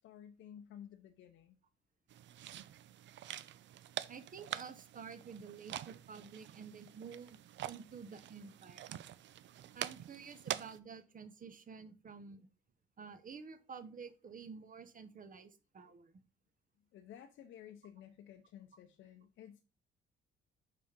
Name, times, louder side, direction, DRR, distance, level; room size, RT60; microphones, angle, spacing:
voice 1, 0.0-1.6 16.9-19.6, left 9 dB, 80° left, 0.7 m, -54 dB
sound 1, 2.1-10.8, right 12 dB, 65° right, 0.5 m, -46 dB
voice 2, 4.1-7.4 7.7-9.0 9.7-12.5 13.0-16.1, right 6 dB, 45° right, 1.1 m, -50 dB
5.3 x 5.0 x 5.2 m
cardioid pair, 90°, 20 cm